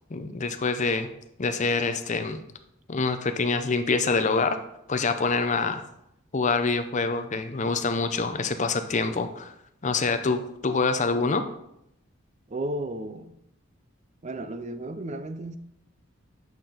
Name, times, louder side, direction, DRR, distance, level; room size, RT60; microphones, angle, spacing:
voice 1, 0.1-1.1 1.4-2.4 2.9-4.6 4.9-5.8 6.3-9.5 9.8-11.4, left 4 dB, 35° left, 0.6 m, -26 dB
voice 2, 12.5-13.4 14.2-15.6, right 1 dB, 35° right, 0.5 m, -33 dB
8.8 x 5.9 x 3.9 m
head